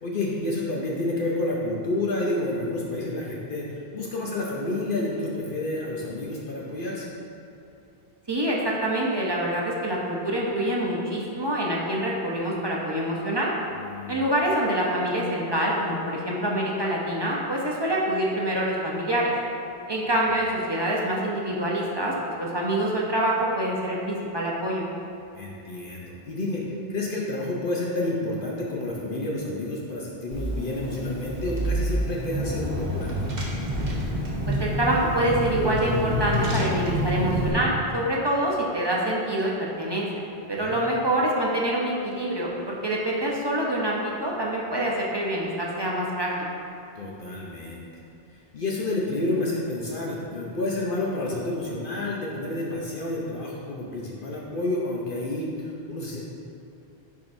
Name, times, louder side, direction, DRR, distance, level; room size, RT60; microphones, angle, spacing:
voice 1, 0.0-7.1 13.7-14.2 25.3-26.6 26.9-33.2 40.6-40.9 47.0-47.8 48.3-56.2, left 2 dB, 60° left, -3 dB, 0.8 m, -30 dB
voice 2, 8.3-13.5 14.1-19.3 19.9-24.8 34.5-40.2 40.5-46.5, right 1 dB, 30° right, -4 dB, 0.6 m, -26 dB
Car / Engine, 30.3-37.5, equal, 45° right, 1.1 m, -28 dB
10.5 x 3.7 x 2.6 m, 2.7 s
omnidirectional pair, 1.1 m